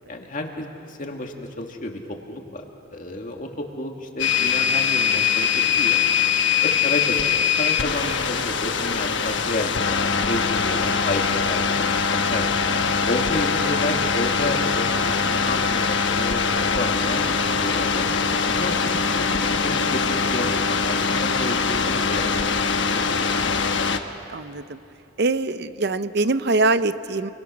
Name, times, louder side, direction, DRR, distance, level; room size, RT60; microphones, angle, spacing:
voice 1, 0.1-2.6 2.9-6.0 6.6-12.5 13.1-18.1 18.4-23.0 23.6-23.7, left 1 dB, 45° left, 2 dB, 2.1 m, -31 dB
sound 1, 4.2-24.0, left 6 dB, 65° left, 1.1 m, -22 dB
voice 2, 24.3-24.8 25.2-27.3, right 3 dB, 55° right, 13 dB, 0.7 m, -23 dB
28.5 x 22.5 x 6.3 m, 2.9 s
head